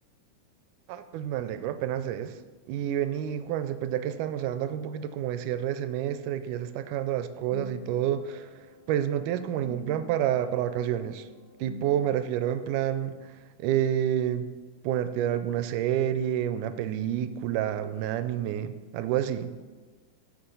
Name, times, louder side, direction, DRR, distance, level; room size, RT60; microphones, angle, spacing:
voice 1, 0.9-2.4 2.7-8.5 8.9-11.3 11.6-13.3 13.6-14.5 14.8-19.5, right 10 dB, 85° right, 11 dB, 2.1 m, -29 dB
sound 1, 7.0-13.1, left 5 dB, 55° left, 1.7 m, -48 dB
14.5 x 6.4 x 3.8 m, 1.4 s
omnidirectional pair, 3.6 m